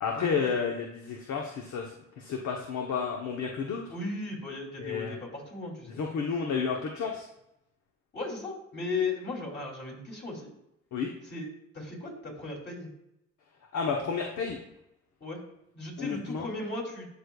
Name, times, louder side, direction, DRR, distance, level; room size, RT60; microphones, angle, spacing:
voice 1, 0.0-3.8 4.8-5.1 6.0-7.2 10.9-11.1 13.7-14.6 16.0-16.5, left 5 dB, 70° left, 1 dB, 0.9 m, -31 dB
voice 2, 3.9-6.0 8.1-10.5 11.2-11.5 11.7-12.9 15.2-15.4 15.7-17.2, left 3 dB, 35° left, -2 dB, 2.8 m, -36 dB
12.5 x 5.1 x 2.3 m, 0.84 s
cardioid pair, 90°, 30 cm